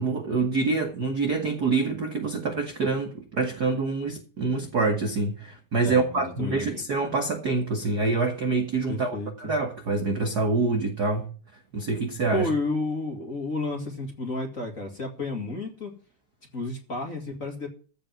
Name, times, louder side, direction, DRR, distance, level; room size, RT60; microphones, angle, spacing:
voice 1, 0.0-11.3 11.7-12.5, right 3 dB, 50° right, 1.3 m, -26 dB
voice 2, 5.8-6.8 8.9-9.5 12.3-15.9 16.5-17.7, left 2 dB, 30° left, 2.0 m, -31 dB
15.0 x 5.2 x 9.1 m
omnidirectional pair, 3.6 m